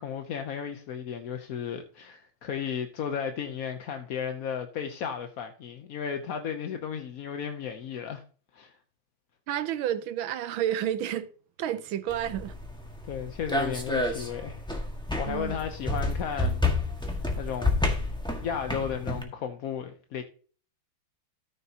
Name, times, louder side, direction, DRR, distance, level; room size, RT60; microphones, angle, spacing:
voice 1, 0.0-8.2 8.5-8.8 13.1-14.6 15.1-16.6 17.0-17.9 18.4-20.2, left 7 dB, 60° left, 0.9 m, -34 dB
voice 2, 9.5-11.3 11.6-12.6 15.2-15.6, right 10 dB, 85° right, 1.6 m, -30 dB
sound 1, 12.1-19.2, left 2 dB, 5° left, 1.3 m, -30 dB
13.5 x 6.8 x 2.8 m
omnidirectional pair, 2.1 m